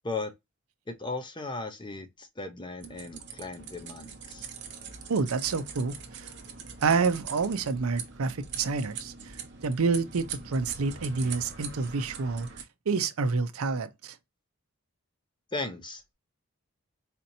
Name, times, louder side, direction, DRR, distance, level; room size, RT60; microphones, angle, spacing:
voice 1, 0.9-4.4 15.5-16.1, left 3 dB, 20° left, 0.6 m, -36 dB
sound 1, 2.8-12.6, right 6 dB, 55° right, 0.8 m, -42 dB
voice 2, 5.1-6.3 6.8-9.1 9.6-12.5 12.9-14.1, right 4 dB, 85° right, 0.6 m, -28 dB
4.3 x 2.8 x 2.6 m
head